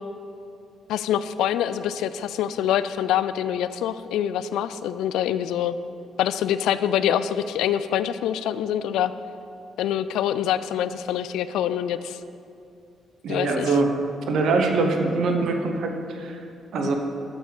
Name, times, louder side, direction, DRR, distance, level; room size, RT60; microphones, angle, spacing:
voice 1, 0.9-5.8 6.2-9.1 9.8-12.2 13.3-13.8 16.8-16.9, left 10 dB, 85° left, 13 dB, 0.3 m, -25 dB
voice 2, 13.2-14.0 14.3-16.4 16.7-16.9, right 3 dB, 70° right, 4 dB, 1.0 m, -23 dB
6.6 x 6.1 x 6.9 m, 2.6 s
cardioid pair, 90°, 0 cm